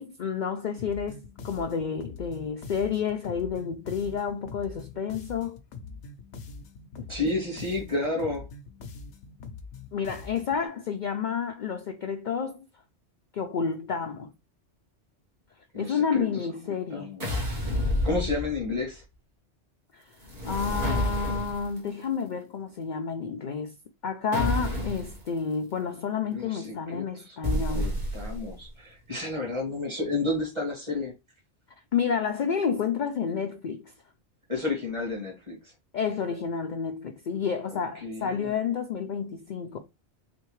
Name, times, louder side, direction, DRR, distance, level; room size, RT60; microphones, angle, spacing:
voice 1, 0.0-5.6 9.9-12.7 13.3-14.3 15.8-17.1 19.9-20.2 20.4-23.7 24.0-27.9 31.9-33.8 35.9-39.8, left 6 dB, 55° left, 0.6 m, -30 dB
sound 1, 0.8-10.6, left 4 dB, 80° left, 1.0 m, -43 dB
voice 2, 7.1-8.5 15.7-16.3 16.9-17.4 18.0-19.0 26.3-27.4 27.7-31.1 34.5-35.7 38.0-38.5, left 2 dB, 25° right, 1.6 m, -31 dB
sound 2, 17.2-18.8 20.2-21.8 24.3-25.2 27.4-28.5, left 1 dB, 45° right, 1.3 m, -29 dB
3.7 x 3.4 x 3.1 m
omnidirectional pair, 1.2 m